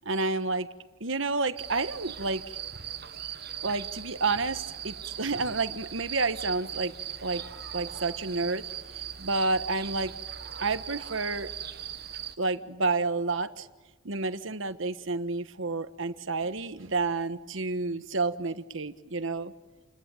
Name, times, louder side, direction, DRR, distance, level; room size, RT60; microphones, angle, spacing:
voice 1, 0.0-0.7 1.0-2.6 3.6-7.4 7.7-8.6 9.2-10.1 10.6-11.5 12.4-13.7 14.0-19.5, right 3 dB, 70° right, 11 dB, 1.4 m, -30 dB
sound 1, 1.6-12.3, right 9 dB, 50° right, 1.5 m, -39 dB
29.0 x 21.0 x 9.1 m, 1.2 s
head